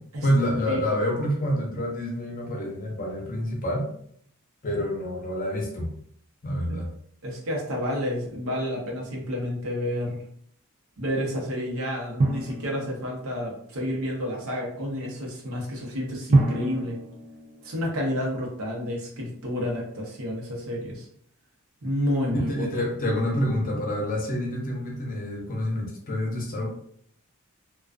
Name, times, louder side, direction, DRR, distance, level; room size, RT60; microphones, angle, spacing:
voice 1, 0.0-3.9 4.6-5.9 6.4-6.9 22.3-26.7, equal, 40° left, -1 dB, 0.7 m, -27 dB
voice 2, 0.7-1.0 7.2-10.2 11.0-17.0 17.6-21.1 21.8-22.6, left 1 dB, 70° right, -2 dB, 0.8 m, -30 dB
Drum, 12.2-13.7 16.3-18.5, right 2 dB, 35° right, 0.3 m, -28 dB
2.3 x 2.3 x 2.3 m, 0.65 s
head